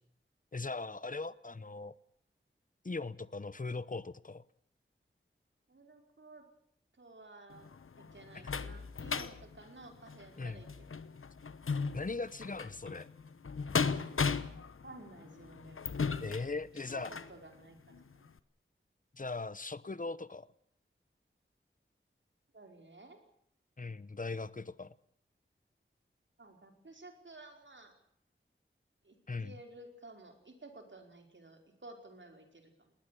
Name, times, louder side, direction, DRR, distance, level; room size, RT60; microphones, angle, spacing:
voice 1, 0.5-1.9 2.8-4.4 8.4-8.5 10.4-10.6 11.9-13.1 16.2-17.1 19.1-20.5 23.8-24.9 29.3-29.5, left 3 dB, 40° left, 17 dB, 1.0 m, -39 dB
voice 2, 5.7-6.5 6.9-7.7 8.0-10.9 14.8-15.9 16.9-18.3 22.5-23.2 26.4-27.9 29.0-32.9, right 2 dB, 65° right, 4 dB, 4.9 m, -54 dB
sound 1, 7.5-17.4 17.9-18.0 18.4-18.5, left 5 dB, 85° left, 1.1 m, -37 dB
20.0 x 19.5 x 8.4 m, 0.69 s
wide cardioid pair, 70°, 21 cm